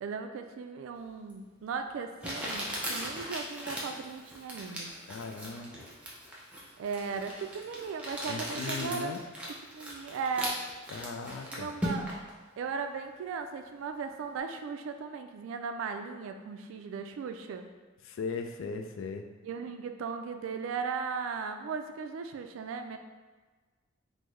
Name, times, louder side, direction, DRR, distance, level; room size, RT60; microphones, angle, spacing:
voice 1, 0.0-4.9 6.8-9.1 9.7-10.6 11.5-12.1 12.6-17.7 19.4-23.0, right 5 dB, 80° right, 6 dB, 0.3 m, -37 dB
Crumpling crinkling, 1.3-1.4 2.2-12.3, equal, 5° right, 0.5 m, -38 dB
voice 2, 5.1-5.8 8.3-9.2 10.9-11.7 18.0-19.2, left 4 dB, 70° left, 5 dB, 0.3 m, -38 dB
3.5 x 2.1 x 3.1 m, 1.3 s
head